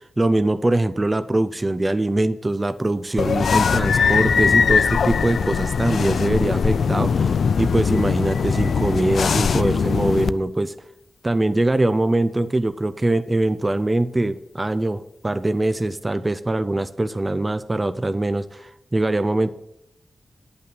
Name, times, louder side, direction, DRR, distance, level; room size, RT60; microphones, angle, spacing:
voice 1, 0.2-10.7 11.2-19.5, right 2 dB, 20° right, 12 dB, 0.5 m, -22 dB
sound 1, 3.2-10.3, left 6 dB, 85° left, 0.3 m, -20 dB
10.5 x 5.9 x 7.7 m, 0.78 s
wide cardioid pair, 155°, 0 cm